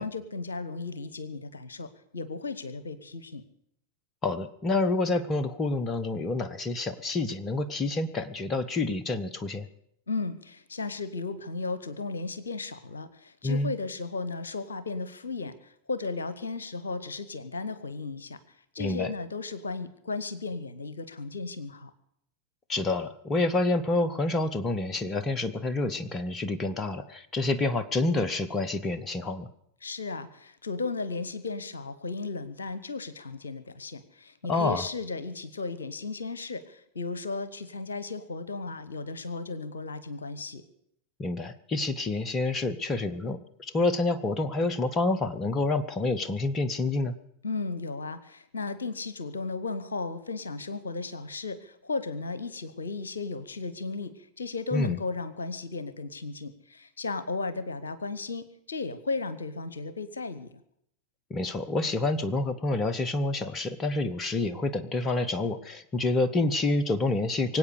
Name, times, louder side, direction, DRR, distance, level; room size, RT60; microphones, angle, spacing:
voice 1, 0.0-3.4 10.1-18.4 18.7-21.9 29.8-40.6 47.4-60.6, left 3 dB, 70° left, 14 dB, 1.0 m, -35 dB
voice 2, 4.2-9.7 13.4-13.7 18.8-19.1 22.7-29.5 34.5-34.8 41.2-47.1 54.7-55.0 61.3-67.6, left 2 dB, 25° left, 12 dB, 0.9 m, -28 dB
24.0 x 8.4 x 6.5 m, 0.74 s
figure-of-eight pair, 90°, 0 cm